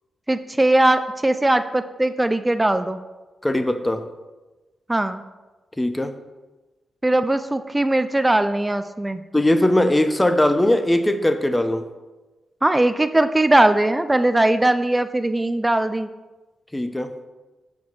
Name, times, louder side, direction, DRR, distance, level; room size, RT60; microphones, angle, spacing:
voice 1, 0.3-3.0 4.9-5.2 7.0-9.2 12.6-16.1, right 1 dB, 20° right, 11 dB, 0.4 m, -20 dB
voice 2, 3.4-4.0 5.8-6.1 9.3-11.9 16.7-17.1, left 1 dB, 15° left, 9 dB, 0.8 m, -20 dB
5.8 x 4.5 x 5.9 m, 1.2 s
supercardioid pair, 40°, 0 cm